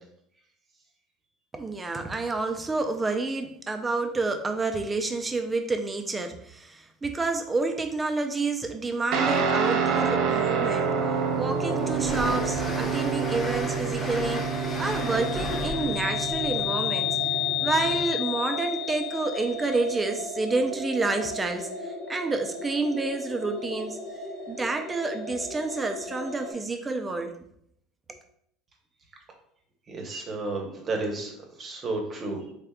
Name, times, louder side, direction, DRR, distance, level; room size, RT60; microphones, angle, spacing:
voice 1, 1.5-10.9 11.4-17.2 17.6-24.0 24.5-27.3 28.1-28.2, right 3 dB, 15° right, 5 dB, 0.4 m, -29 dB
Guitar, 9.1-18.0, right 6 dB, 65° right, 0.6 m, -28 dB
Train, 10.4-18.2, left 2 dB, 25° left, 0.8 m, -37 dB
sound 1, 11.5-26.5, left 5 dB, 80° left, 1.1 m, -33 dB
voice 2, 29.9-31.3 31.6-32.4, right 2 dB, 30° right, 2 dB, 0.8 m, -32 dB
3.5 x 3.5 x 2.2 m, 0.70 s
supercardioid pair, 125°, 0 cm